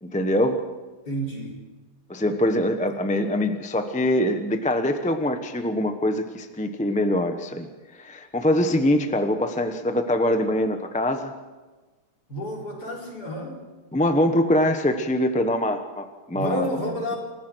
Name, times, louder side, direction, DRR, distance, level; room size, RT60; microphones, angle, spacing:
voice 1, 0.0-0.6 2.1-7.7 8.0-11.3 13.9-16.6, left 1 dB, 10° left, 7 dB, 0.5 m, -23 dB
voice 2, 1.1-1.6 12.3-13.6 16.3-17.2, equal, 45° left, -2 dB, 4.9 m, -30 dB
28.5 x 15.0 x 6.3 m, 1.2 s
omnidirectional pair, 2.4 m